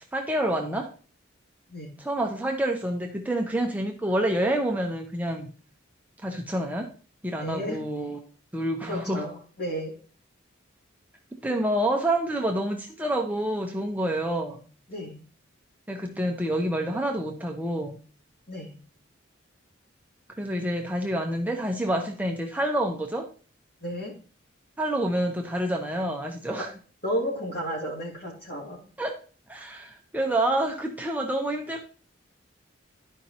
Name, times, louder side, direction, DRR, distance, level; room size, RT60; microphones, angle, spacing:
voice 1, 0.1-0.9 2.0-5.5 6.2-6.9 7.2-8.2 8.5-9.3 11.4-14.6 15.9-18.0 20.4-23.3 24.8-26.7 29.0-29.1 29.5-31.9, right 1 dB, 10° right, 2 dB, 0.6 m, -28 dB
voice 2, 7.3-7.8 8.8-9.9 14.9-15.2 18.5-18.7 23.8-24.1 27.0-28.8, equal, 50° left, -2 dB, 2.7 m, -32 dB
12.0 x 5.2 x 2.9 m, 0.39 s
head